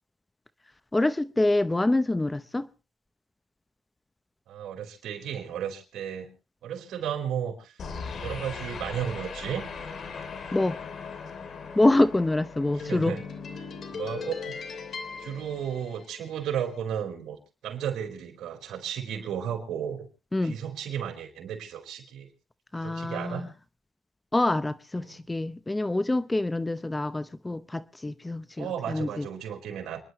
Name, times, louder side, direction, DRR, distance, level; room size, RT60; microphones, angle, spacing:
voice 1, 0.9-2.7 10.5-10.8 11.7-13.2 20.3-20.6 22.7-23.5 24.3-29.3, left 2 dB, 15° left, 0.7 m, -26 dB
voice 2, 4.5-6.3 6.6-7.8 8.2-9.7 12.7-13.3 13.9-14.6 15.2-17.4 17.6-20.1 20.4-22.3 22.8-23.5 25.0-25.3 28.6-30.0, right 9 dB, 75° right, 4.5 m, -34 dB
sound 1, 7.8-16.3, left 5 dB, 55° left, 2.9 m, -38 dB
29.0 x 11.0 x 3.1 m
cardioid pair, 90°, 0 cm